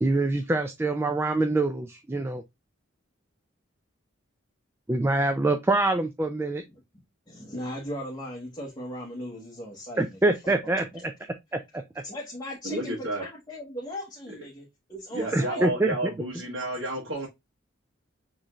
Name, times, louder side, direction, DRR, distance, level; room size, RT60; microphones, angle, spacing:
voice 1, 0.0-2.4 4.9-6.6 10.0-11.1 11.5-11.8 15.3-16.0, right 2 dB, 10° right, 0.3 m, -25 dB
voice 2, 7.3-11.0 12.0-14.6 14.9-15.6, equal, 20° left, 1.1 m, -38 dB
voice 3, 12.6-13.2 15.1-17.3, right 1 dB, 70° right, 1.3 m, -31 dB
6.5 x 3.1 x 2.4 m
head